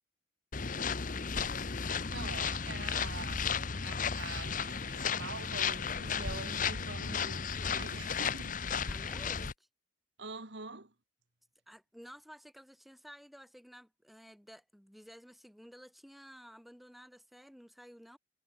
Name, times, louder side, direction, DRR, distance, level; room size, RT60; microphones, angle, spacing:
sound 1, 0.5-9.5, left 6 dB, 40° left, 0.9 m, -34 dB
voice 1, 1.3-3.5 3.8-8.6 10.2-10.9, right 3 dB, 60° right, 2.1 m, -46 dB
voice 2, 8.9-9.7 11.7-18.2, equal, ahead, 7.4 m, -53 dB
head